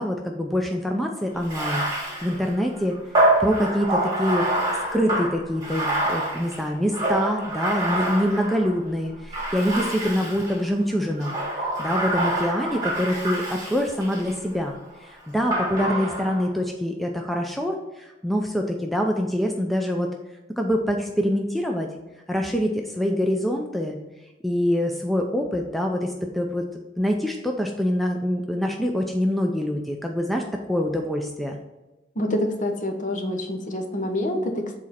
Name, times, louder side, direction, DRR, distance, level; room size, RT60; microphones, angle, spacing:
voice 1, 0.0-3.0 3.4-4.5 4.9-20.1 20.6-21.9 22.3-24.0 24.4-26.7 27.0-30.4 30.7-31.6, equal, ahead, 1 dB, 0.5 m, -25 dB
Bathtub (filling or washing), 1.4-8.8 9.3-10.6 11.2-14.4 15.5-16.5, right 1 dB, 20° right, 2.1 m, -26 dB
voice 2, 32.1-34.8, left 1 dB, 45° left, 3 dB, 1.0 m, -27 dB
7.3 x 4.2 x 4.2 m, 1.1 s
head